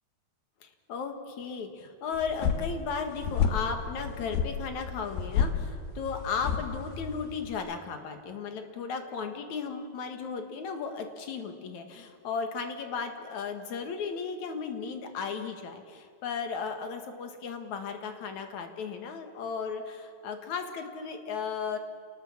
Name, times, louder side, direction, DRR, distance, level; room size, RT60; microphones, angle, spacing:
voice 1, 0.6-21.8, left 5 dB, 55° left, 6 dB, 2.7 m, -35 dB
sound 1, 2.1-7.5, left 7 dB, 85° left, 3.5 m, -31 dB
28.0 x 19.5 x 7.3 m, 2.2 s
omnidirectional pair, 4.5 m